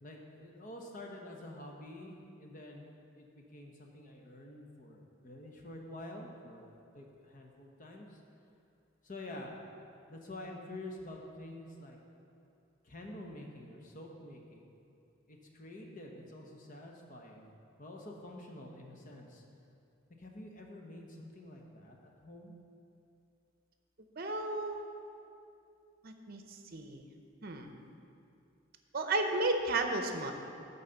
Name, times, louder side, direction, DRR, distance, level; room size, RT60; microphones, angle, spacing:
voice 1, 0.0-8.2 9.0-9.7 10.1-12.0 12.8-14.7 15.3-17.5 17.8-19.4 20.2-22.5, left 1 dB, 40° left, 1 dB, 1.0 m, -48 dB
voice 2, 24.2-24.8 26.0-26.4 26.7-27.0 27.4-27.7 28.9-30.3, right 2 dB, 50° right, 5 dB, 0.7 m, -33 dB
11.0 x 4.1 x 6.7 m, 2.6 s
head